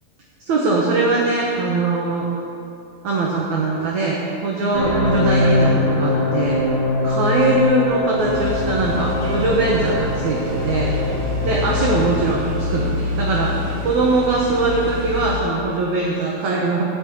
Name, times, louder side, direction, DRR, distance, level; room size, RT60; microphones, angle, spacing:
voice 1, 0.4-2.3 3.0-6.8 7.0-10.9 11.4-13.5 13.8-16.8, right 2 dB, 65° right, -3 dB, 2.2 m, -21 dB
Lonesome Angel, 4.7-12.4, left 1 dB, 45° left, 4.2 m, -22 dB
sound 1, 8.2-15.4, left 3 dB, 90° right, 1.1 m, -26 dB
14.0 x 5.5 x 8.4 m, 2.7 s
omnidirectional pair, 4.2 m